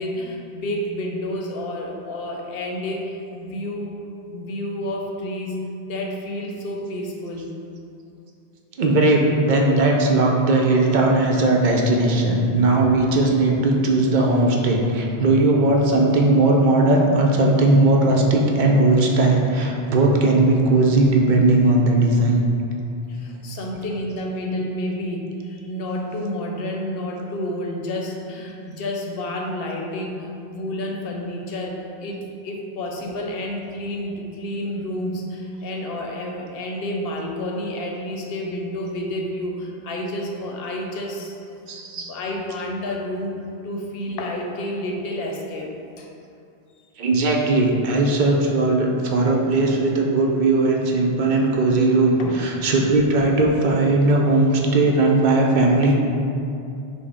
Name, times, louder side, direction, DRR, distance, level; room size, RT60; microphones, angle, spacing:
voice 1, 0.0-4.0 4.3-7.5 23.1-41.6 41.9-43.4 43.6-46.1 52.2-52.4, left 1 dB, 70° left, 0 dB, 0.8 m, -30 dB
voice 2, 8.8-22.4 41.7-42.1 47.0-55.9, right 2 dB, 60° right, 0 dB, 0.6 m, -18 dB
5.9 x 2.0 x 3.4 m, 2.6 s
omnidirectional pair, 1.0 m